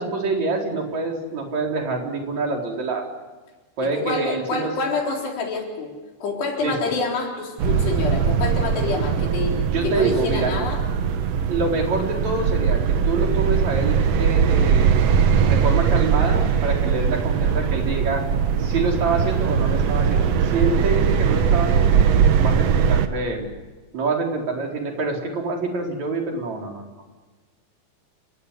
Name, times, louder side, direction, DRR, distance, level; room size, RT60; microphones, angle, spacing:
voice 1, 0.0-3.1 3.8-4.7 6.6-6.9 9.6-10.5 11.5-15.1 15.4-18.2 18.6-22.0 22.4-23.5 23.9-26.9, right 3 dB, 45° right, 1 dB, 5.3 m, -26 dB
voice 2, 3.8-5.9 6.2-10.8, left 3 dB, 80° left, 0 dB, 6.2 m, -27 dB
sound 1, 7.6-23.1, right 7 dB, 65° right, 1.6 m, -20 dB
29.5 x 18.0 x 9.9 m, 1.3 s
omnidirectional pair, 4.7 m